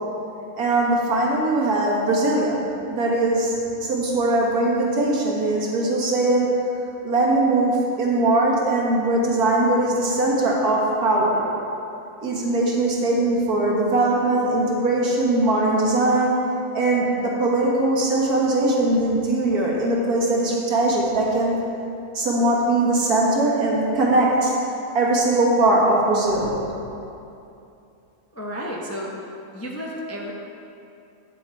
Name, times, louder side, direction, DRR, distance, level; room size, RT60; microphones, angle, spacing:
voice 1, 0.6-6.5 7.0-11.5 12.2-16.4 16.7-21.5 22.1-24.5 24.9-26.6, right 2 dB, 75° right, -3 dB, 2.0 m, -21 dB
voice 2, 28.3-29.1 29.5-30.3, equal, 15° left, -3 dB, 0.4 m, -32 dB
8.8 x 7.2 x 4.5 m, 2.7 s
omnidirectional pair, 1.6 m